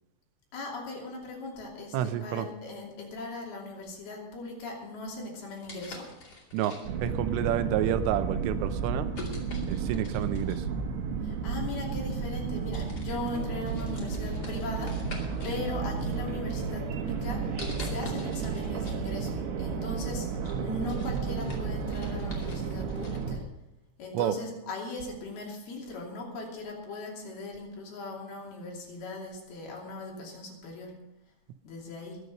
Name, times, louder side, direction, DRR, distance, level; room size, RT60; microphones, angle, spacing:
voice 1, 0.5-6.1 11.2-23.4 24.0-30.9 31.6-32.2, left 2 dB, 55° left, -2 dB, 4.4 m, -39 dB
voice 2, 1.9-2.5 6.5-9.1 9.7-10.7 24.1-24.3, right 11 dB, 90° right, 11 dB, 3.3 m, -29 dB
sound 1, 5.5-7.2 7.9-8.1 9.1-10.7 11.8-11.9 12.3-12.5 12.7-15.6 16.0-16.7 17.6-19.0 19.4-19.5 20.0-23.3, left 2 dB, 30° left, 1.9 m, -46 dB
sound 2, 6.8-23.4, right 5 dB, 65° right, 3.3 m, -32 dB
21.5 x 8.1 x 5.4 m, 0.92 s
omnidirectional pair, 5.7 m